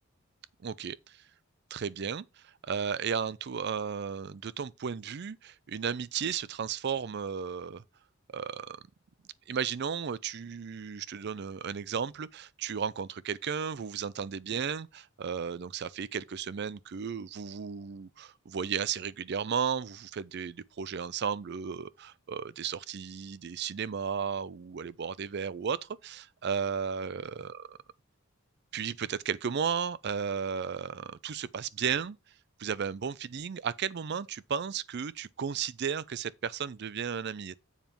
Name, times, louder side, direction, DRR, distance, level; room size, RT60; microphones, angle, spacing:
voice 1, 0.6-1.2 1.7-7.8 8.3-8.8 9.5-27.8 28.7-32.2 32.6-37.6, right 7 dB, 50° right, 0.4 m, -34 dB
7.3 x 5.3 x 4.3 m
head